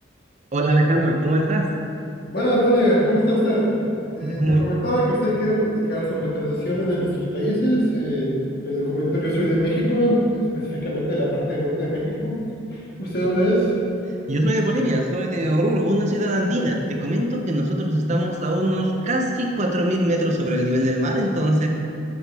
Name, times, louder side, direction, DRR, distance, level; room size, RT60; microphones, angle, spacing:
voice 1, 0.5-1.7 4.2-4.6 14.3-21.7, right 1 dB, 35° right, 2 dB, 0.6 m, -21 dB
voice 2, 2.3-3.7 4.1-8.4 8.6-12.4 12.7-13.7, equal, 50° left, -5 dB, 1.7 m, -22 dB
8.5 x 6.0 x 3.4 m, 2.7 s
head